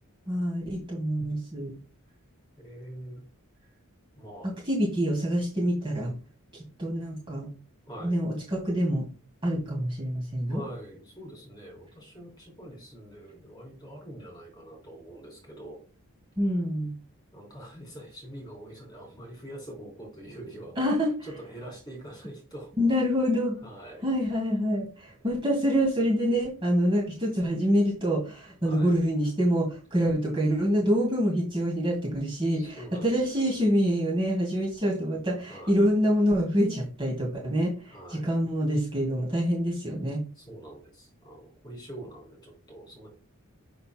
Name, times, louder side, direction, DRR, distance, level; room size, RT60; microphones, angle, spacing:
voice 1, 0.3-1.7 4.4-6.1 6.8-7.5 8.0-9.1 9.4-10.6 16.4-16.9 20.8-21.1 22.8-23.6 24.0-40.2, equal, 25° right, -2 dB, 2.1 m, -26 dB
voice 2, 2.6-3.2 4.2-4.5 7.9-8.2 10.5-15.8 17.3-20.7 21.2-22.7 23.6-24.1 28.6-28.9 32.5-33.5 35.5-35.8 37.9-38.3 40.4-43.1, right 1 dB, 20° left, -1 dB, 3.5 m, -44 dB
6.9 x 6.5 x 2.2 m, 0.35 s
head